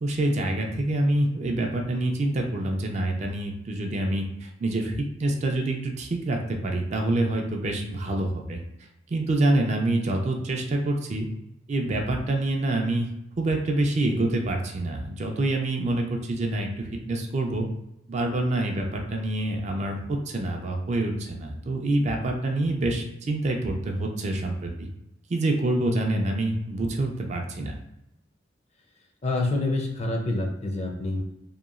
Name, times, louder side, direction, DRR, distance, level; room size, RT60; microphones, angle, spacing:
voice 1, 0.0-8.6 9.1-11.3 11.7-13.1 13.4-17.7 18.1-24.9 25.3-27.7, right 2 dB, 35° right, 2 dB, 0.3 m, -26 dB
voice 2, 29.2-31.2, left 2 dB, 35° left, 1 dB, 0.5 m, -27 dB
2.9 x 2.3 x 2.4 m, 0.86 s
head